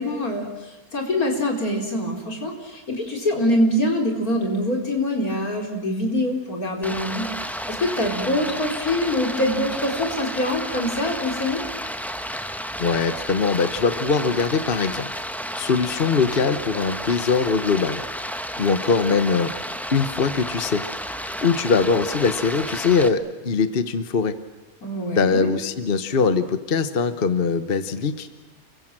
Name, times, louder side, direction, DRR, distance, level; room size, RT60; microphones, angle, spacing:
voice 1, 0.0-11.6 24.8-25.5, left 1 dB, 80° left, 2 dB, 4.6 m, -24 dB
Stream, 6.8-23.1, equal, ahead, 1.0 m, -32 dB
voice 2, 12.8-15.1 15.6-18.0 18.6-19.5 19.9-20.9 21.4-24.4 25.1-28.4, left 5 dB, 40° left, 11 dB, 1.2 m, -22 dB
29.5 x 22.5 x 7.5 m, 1.1 s
omnidirectional pair, 1.5 m